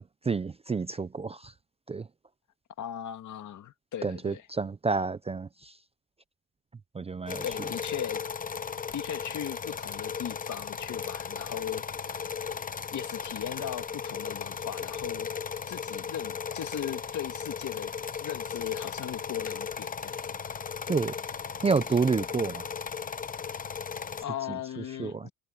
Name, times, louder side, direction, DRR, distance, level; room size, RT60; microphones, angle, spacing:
voice 1, 0.0-1.5 1.9-2.1 4.0-5.7 6.9-7.4 20.9-21.2 21.6-22.6 25.0-25.3, right 4 dB, 15° right, 0.5 m, -29 dB
voice 2, 2.8-4.5 7.4-8.2 8.9-11.8 12.9-15.3 15.6-17.9 18.2-20.3 24.2-25.3, left 10 dB, 55° left, 2.0 m, -38 dB
sound 1, 7.3-24.2, left 6 dB, 25° left, 0.7 m, -36 dB
cardioid pair, 135°, 36 cm